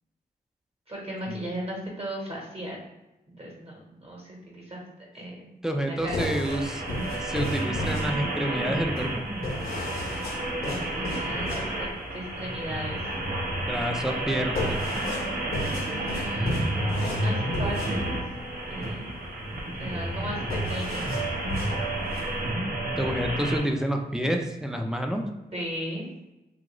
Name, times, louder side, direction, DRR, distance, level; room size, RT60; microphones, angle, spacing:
voice 1, 0.9-2.8 3.4-4.8 5.1-5.4 5.8-6.3 10.7-13.0 15.9-18.1 18.7-19.1 19.8-20.4 20.6-21.1 25.5-26.1, equal, 35° right, -3 dB, 1.2 m, -36 dB
voice 2, 5.6-6.8 7.2-9.3 13.6-14.8 23.0-25.2, equal, 5° right, 3 dB, 0.4 m, -28 dB
sound 1, 6.0-22.5, left 1 dB, 60° left, 0.7 m, -35 dB
sound 2, 6.4-23.6, right 1 dB, 60° right, 0.8 m, -31 dB
2.9 x 2.4 x 2.9 m, 1.0 s
cardioid pair, 75°, 17 cm